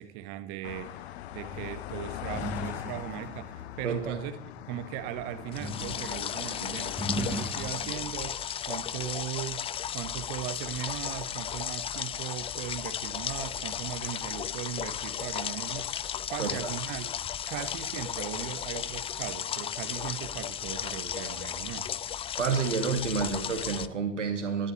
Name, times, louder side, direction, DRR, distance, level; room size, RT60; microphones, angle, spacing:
voice 1, 0.0-9.7 9.9-17.1 17.5-22.0, right 12 dB, 50° right, 10 dB, 1.6 m, -38 dB
sound 1, 0.6-7.5, left 13 dB, 60° left, 0.8 m, -41 dB
sound 2, 1.5-4.7 5.6-6.3 6.7-8.2, right 1 dB, 5° right, 1.5 m, -38 dB
voice 2, 3.8-4.2 16.4-16.7 22.4-24.7, right 5 dB, 80° right, 5 dB, 2.1 m, -29 dB
sound 3, 5.5-23.9, left 9 dB, 15° left, 0.4 m, -35 dB
20.0 x 13.5 x 3.3 m, 0.76 s
figure-of-eight pair, 80°, 36 cm